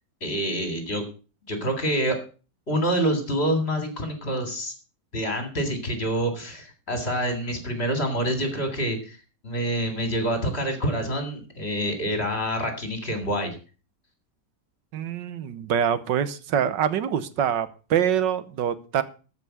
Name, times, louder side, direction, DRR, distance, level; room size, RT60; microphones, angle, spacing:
voice 1, 0.2-1.0 1.5-2.2 2.7-4.7 5.1-9.2 9.4-13.6, right 1 dB, 30° left, 6 dB, 3.3 m, -27 dB
voice 2, 14.9-19.0, right 9 dB, 70° right, 14 dB, 1.6 m, -25 dB
13.5 x 6.1 x 7.8 m, 0.36 s
omnidirectional pair, 2.1 m